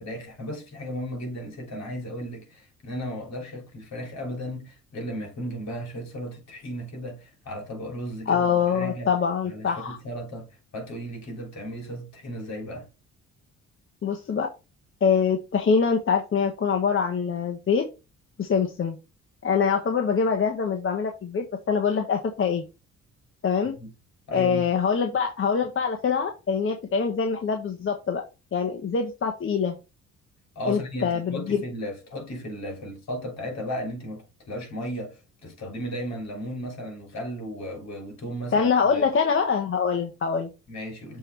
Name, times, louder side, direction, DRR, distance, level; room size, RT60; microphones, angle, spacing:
voice 1, 0.0-9.1 9.5-12.9 23.7-23.9 24.3-24.7 30.5-39.1 40.7-41.2, equal, 60° left, 3.2 m, -35 dB
voice 2, 8.3-10.0 14.0-14.5 15.0-17.8 18.4-19.0 19.4-22.6 23.4-23.7 24.3-28.2 28.5-29.8 30.6-31.6 38.5-40.5, left 6 dB, 45° left, 1.1 m, -24 dB
6.9 x 3.3 x 4.5 m
cardioid pair, 90°, 30 cm